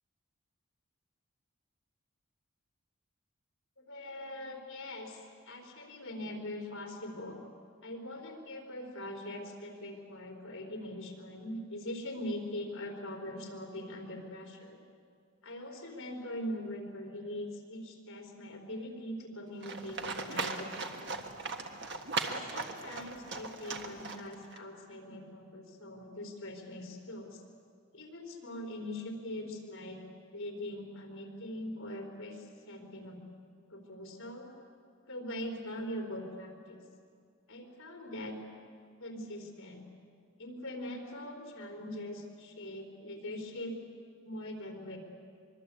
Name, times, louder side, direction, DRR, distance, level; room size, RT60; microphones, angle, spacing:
voice 1, 3.8-7.4 7.8-14.8 15.4-21.3 22.2-27.4 27.9-30.0 30.3-33.2 33.7-34.5 35.1-36.8 37.5-38.4 39.0-39.8 40.4-43.7 44.2-45.0, left 1 dB, 65° left, 1 dB, 4.1 m, -42 dB
Livestock farm animals working animals, 19.6-24.6, right 3 dB, 55° right, 1.6 m, -38 dB
24.5 x 22.5 x 8.4 m, 2.3 s
head